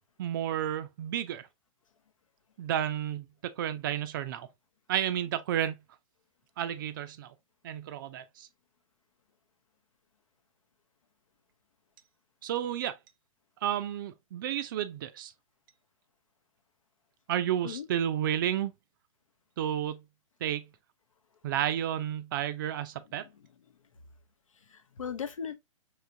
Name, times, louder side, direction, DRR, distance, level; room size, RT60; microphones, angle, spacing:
voice 1, 0.2-1.5 2.6-3.3 3.6-4.5 4.9-5.8 6.6-7.3 7.6-8.5 12.4-13.0 13.6-15.3 17.3-18.7 19.6-20.0 20.4-20.7 21.4-23.2, right 10 dB, 35° right, 0.5 m, -31 dB
voice 2, 23.0-23.8 24.5-25.6, left 7 dB, 65° left, 0.7 m, -40 dB
4.8 x 3.2 x 2.6 m
figure-of-eight pair, 115°, 18 cm